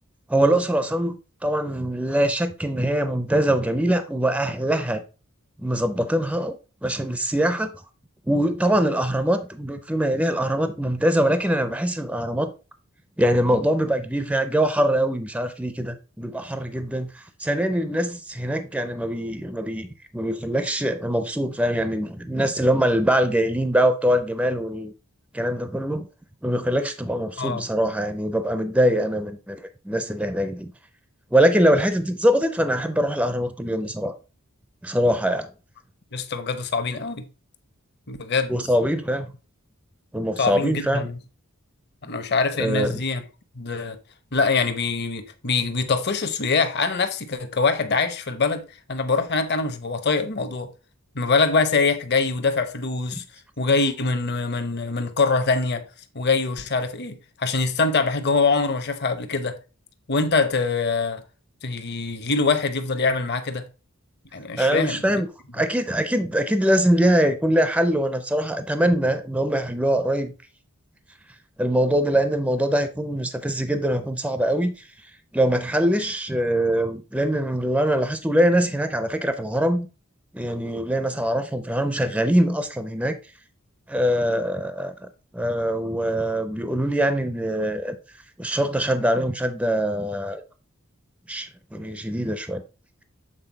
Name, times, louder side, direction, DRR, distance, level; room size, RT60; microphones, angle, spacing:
voice 1, 0.3-5.0 5.6-6.6 6.8-7.7 8.3-12.5 13.2-19.9 20.1-24.9 25.3-26.1 26.4-30.7 31.3-34.2 34.8-35.5 38.5-39.3 40.1-41.1 42.6-43.0 64.6-65.3 65.5-70.3 71.6-74.9 75.3-79.9 80.3-83.2 83.9-84.9 85.3-88.0 88.4-90.4 91.3-92.6, equal, 5° right, 0.5 m, -23 dB
voice 2, 36.1-37.3 38.1-38.5 40.4-41.2 42.0-43.2 43.6-44.0 44.3-48.6 48.9-50.7 51.1-53.2 53.6-55.8 56.1-59.6 60.1-61.2 61.6-63.7 64.3-65.2, left 4 dB, 50° left, 0.9 m, -24 dB
7.8 x 4.0 x 3.9 m
head